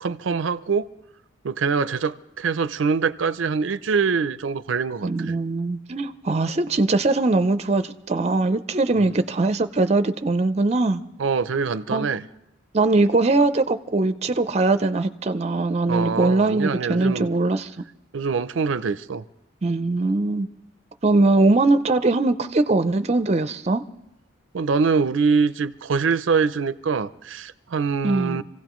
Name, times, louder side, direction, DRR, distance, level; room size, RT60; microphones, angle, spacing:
voice 1, 0.0-0.9 1.4-5.3 8.9-9.1 11.2-12.2 15.9-17.3 18.1-19.2 24.5-28.4, right 5 dB, 90° right, 15 dB, 0.5 m, -24 dB
voice 2, 5.0-11.0 11.9-12.1 12.7-17.7 19.6-20.5 21.0-23.8 28.0-28.4, right 2 dB, 35° right, 10 dB, 0.5 m, -21 dB
26.5 x 16.0 x 3.0 m, 0.86 s
head